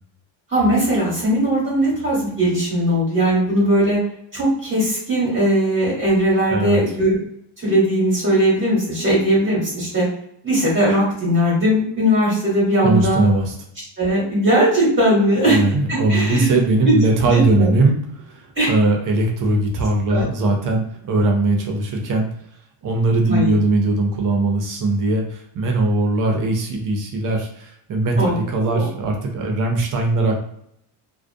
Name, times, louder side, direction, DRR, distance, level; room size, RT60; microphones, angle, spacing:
voice 1, 0.5-4.0 4.3-7.2 7.6-10.1 10.4-13.2 14.0-15.6 15.9-16.5 16.8-17.7 18.6-18.7 20.1-20.2 23.3-23.5 28.1-28.3 28.7-28.9, right 1 dB, 25° right, -5 dB, 1.0 m, -19 dB
voice 2, 12.8-13.5 15.5-18.0 18.7-22.3 22.8-30.4, right 2 dB, 40° right, 2 dB, 0.6 m, -19 dB
2.3 x 2.2 x 2.6 m, 0.72 s
cardioid pair, 140°, 49 cm